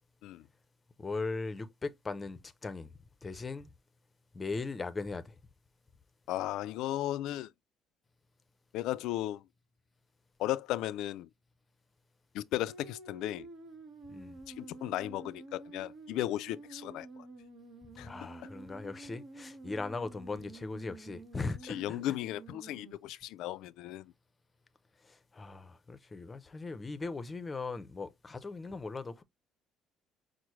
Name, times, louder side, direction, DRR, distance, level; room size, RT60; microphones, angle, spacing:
voice 1, 1.0-2.9 3.2-3.7 4.3-5.3 14.1-14.4 18.0-22.0 25.0-29.2, left 3 dB, 20° left, 0.6 m, -39 dB
voice 2, 6.3-7.5 8.7-9.4 10.4-11.3 12.3-13.5 14.6-17.1 18.0-18.1 21.7-24.1, left 14 dB, 75° left, 0.3 m, -35 dB
sound 1, 12.6-22.9, right 2 dB, 60° right, 1.3 m, -50 dB
5.9 x 2.0 x 3.1 m
cardioid pair, 115°, 0 cm